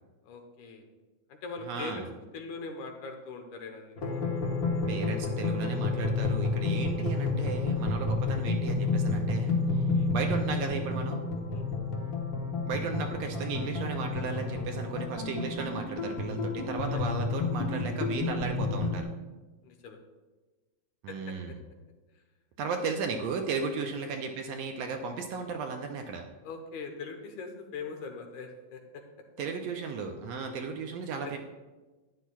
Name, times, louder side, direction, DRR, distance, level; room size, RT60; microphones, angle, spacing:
voice 1, 0.2-0.9 1.3-2.1 2.3-4.2 9.7-10.1 11.5-11.7 16.9-17.0 19.6-20.0 21.1-21.6 23.8-24.2 26.4-29.0 31.2-31.4, left 4 dB, 85° left, 4 dB, 2.4 m, -42 dB
voice 2, 1.7-2.1 4.9-9.8 10.1-11.2 12.6-19.1 21.0-21.6 22.6-26.2 29.4-31.4, right 5 dB, 75° right, 4 dB, 1.6 m, -35 dB
sound 1, 4.0-19.0, left 3 dB, 50° left, 1.0 m, -30 dB
12.0 x 9.7 x 2.3 m, 1.2 s
omnidirectional pair, 3.4 m